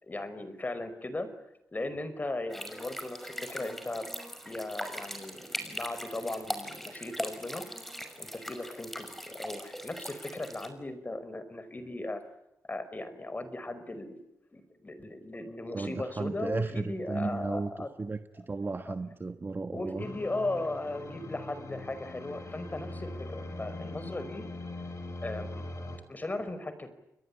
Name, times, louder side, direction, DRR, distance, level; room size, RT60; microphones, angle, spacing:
voice 1, 0.0-1.3 1.7-4.1 4.4-7.6 8.2-12.2 12.7-14.2 14.5-17.9 18.8-19.0 19.7-24.4 25.2-25.6 26.1-27.0, left 2 dB, 30° left, 12 dB, 5.1 m, -37 dB
sound 1, 2.5-10.7, equal, 5° left, 5.7 m, -40 dB
voice 2, 15.7-17.7 18.0-18.2 18.5-20.0, right 3 dB, 35° right, 9 dB, 1.4 m, -34 dB
sound 2, 20.0-26.0, left 2 dB, 50° left, 6.3 m, -41 dB
30.0 x 22.0 x 8.6 m, 0.88 s
cardioid pair, 70°, 6 cm